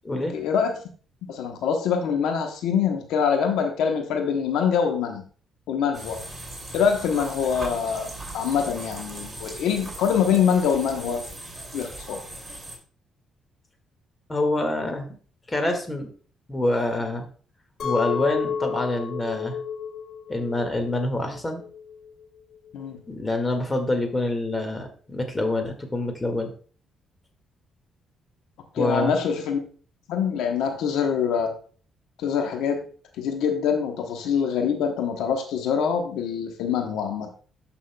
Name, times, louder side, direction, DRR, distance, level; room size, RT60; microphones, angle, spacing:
voice 1, 0.3-0.7 1.3-5.2 5.7-6.2 6.7-8.1 8.3-11.2 11.7-12.2 22.7-23.0 28.7-29.6 30.1-31.5 32.2-32.9 33.2-37.3, left 7 dB, 90° left, 4 dB, 1.0 m, -24 dB
sound 1, 5.9-12.8, right 1 dB, 15° right, 2.4 m, -38 dB
voice 2, 14.3-15.1 15.5-16.1 16.5-17.3 17.8-19.6 20.3-21.6 23.1-26.5 28.8-29.1, left 1 dB, 20° left, 5 dB, 1.8 m, -26 dB
Chink clink, 17.8-23.0, left 7 dB, 60° left, 1.5 m, -32 dB
13.0 x 5.6 x 2.2 m, 0.42 s
cardioid pair, 90°, 0 cm